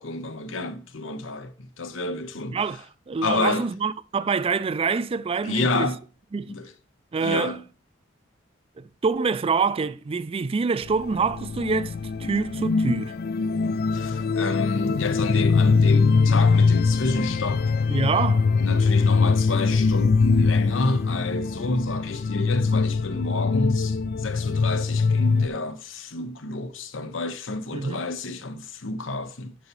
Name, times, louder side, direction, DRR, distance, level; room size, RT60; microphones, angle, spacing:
voice 1, 0.0-2.6 3.2-3.7 5.4-6.0 6.5-6.7 7.2-7.6 13.9-17.7 18.6-29.5, left 2 dB, 80° left, 1.0 m, -29 dB
voice 2, 2.5-5.9 6.3-6.5 7.1-7.6 8.8-11.9 12.2-13.2 17.9-18.4 27.7-28.0, right 5 dB, 30° right, 0.4 m, -26 dB
sound 1, 10.8-25.5, left 4 dB, 50° left, 0.4 m, -22 dB
10.5 x 5.6 x 3.0 m
head